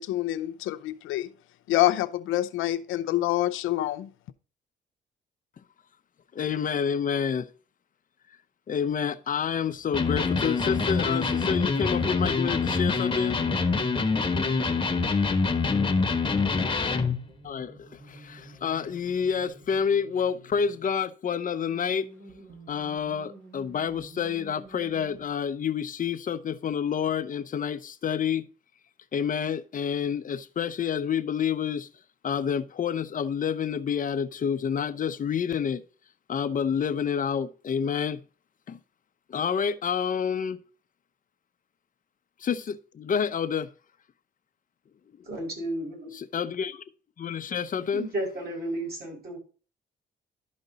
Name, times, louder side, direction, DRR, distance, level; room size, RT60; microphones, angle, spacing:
voice 1, 0.0-1.3 1.7-4.1, left 14 dB, 90° left, 0.6 m, -26 dB
voice 2, 6.3-7.5 8.7-13.4 17.4-22.1 22.7-28.5 29.1-31.9 32.2-35.8 36.3-38.2 38.7-38.8 39.3-40.6 42.4-43.7 46.1-46.8 47.2-48.1, left 7 dB, 45° left, 0.7 m, -28 dB
Electric guitar, 9.9-17.2, left 4 dB, 25° left, 1.2 m, -25 dB
sound 1, 11.7-20.9 21.6-25.3, right 1 dB, 70° right, 2.9 m, -51 dB
voice 3, 45.3-46.1 47.9-49.4, right 1 dB, 50° right, 5.3 m, -33 dB
12.0 x 5.2 x 4.0 m
cardioid pair, 90°, 20 cm